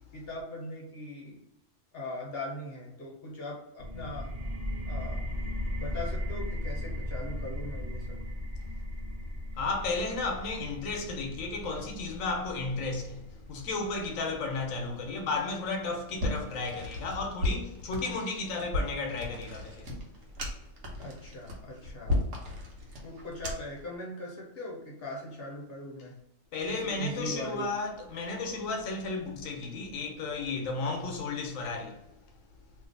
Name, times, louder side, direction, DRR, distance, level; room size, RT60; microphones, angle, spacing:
voice 1, 0.1-1.4 1.9-4.3 4.9-5.2 5.8-8.2 21.0-22.2 23.0-26.2 26.7-27.7, left 1 dB, 55° left, 1.0 m, -40 dB
sound 1, 3.8-15.2, left 1 dB, 45° right, 0.9 m, -37 dB
voice 2, 9.6-20.0 26.5-32.0, left 3 dB, 90° left, 1.1 m, -33 dB
sound 2, 16.2-23.8, left 2 dB, 80° right, 1.2 m, -35 dB
2.7 x 2.5 x 3.8 m
omnidirectional pair, 1.3 m